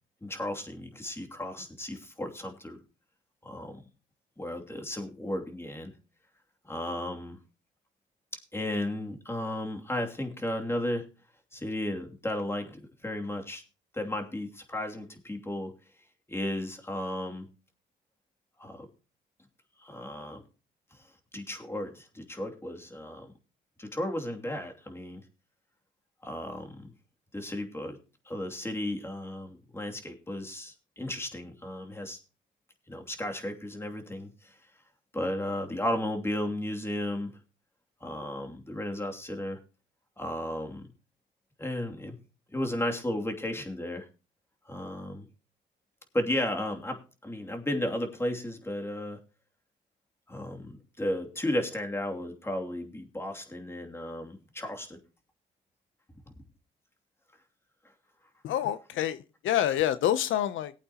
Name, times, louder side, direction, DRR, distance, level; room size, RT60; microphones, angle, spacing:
voice 1, 0.2-2.8 3.4-3.8 4.4-5.9 6.6-7.4 8.3-11.1 11.5-13.6 13.9-15.7 16.3-17.5 18.6-18.9 19.8-20.4 20.9-21.0 21.3-23.3 23.8-25.2 26.2-26.9 27.3-28.0 28.3-32.2 32.9-34.6 35.1-37.3 38.0-39.6 40.2-40.9 41.6-42.2 42.5-44.1 44.7-45.3 46.1-49.2 50.3-55.0, left 1 dB, 10° left, 2.7 m, -34 dB
voice 2, 58.4-60.7, left 11 dB, 75° left, 0.7 m, -27 dB
19.0 x 8.5 x 2.9 m
cardioid pair, 90°, 20 cm